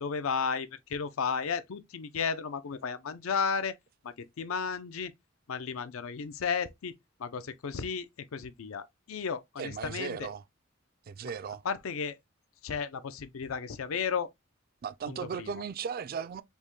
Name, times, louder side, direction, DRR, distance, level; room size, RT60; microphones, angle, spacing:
voice 1, 0.0-3.7 4.0-5.1 5.5-6.9 7.2-10.3 11.6-12.1 12.6-14.3 15.1-15.5, left 6 dB, 75° left, 0.5 m, -33 dB
voice 2, 9.6-10.4 11.1-11.6 14.8-16.4, right 6 dB, 45° right, 0.3 m, -36 dB
5.3 x 2.1 x 3.0 m
head